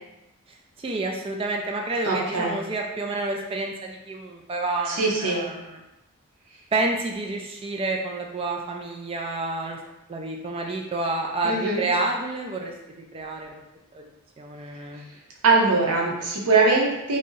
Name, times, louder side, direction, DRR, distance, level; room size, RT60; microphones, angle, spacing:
voice 1, 0.8-5.8 6.7-9.8 10.1-13.6 13.9-14.1 14.4-15.0, right 2 dB, 25° right, 1 dB, 0.3 m, -29 dB
voice 2, 2.0-2.5 4.9-5.4 11.4-11.8 15.4-17.2, right 3 dB, 85° right, -3 dB, 0.7 m, -21 dB
2.6 x 2.0 x 3.7 m, 0.93 s
head